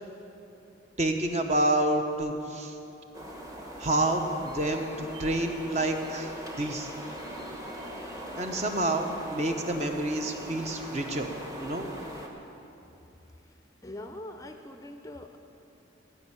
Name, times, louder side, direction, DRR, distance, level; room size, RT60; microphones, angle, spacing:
voice 1, 1.0-2.7 3.8-6.9 8.3-11.3 11.6-11.9, right 1 dB, 35° right, 4 dB, 0.9 m, -28 dB
sound 1, 3.1-12.3, equal, 20° right, 1.1 m, -41 dB
voice 2, 13.8-15.4, left 1 dB, 15° left, 6 dB, 0.5 m, -42 dB
16.0 x 5.6 x 8.6 m, 2.9 s
head